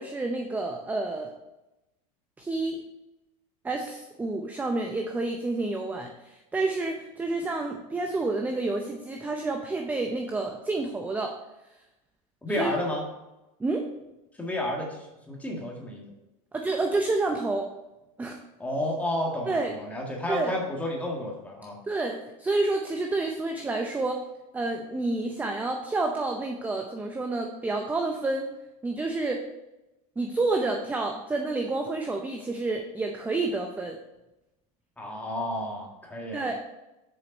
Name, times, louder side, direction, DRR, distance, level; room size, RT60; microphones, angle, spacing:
voice 1, 0.0-1.3 2.4-2.8 3.6-11.4 12.6-12.7 13.6-13.9 16.5-17.7 18.2-18.4 19.5-19.7 20.3-20.5 21.9-24.2 24.5-28.5 28.8-29.4 30.2-34.0 36.3-36.8, right 2 dB, 10° right, 3 dB, 0.6 m, -29 dB
voice 2, 12.4-13.1 14.4-16.0 18.6-21.8 35.0-36.5, left 1 dB, 10° left, -1 dB, 1.8 m, -31 dB
6.9 x 5.0 x 5.3 m, 0.97 s
supercardioid pair, 130°, 19 cm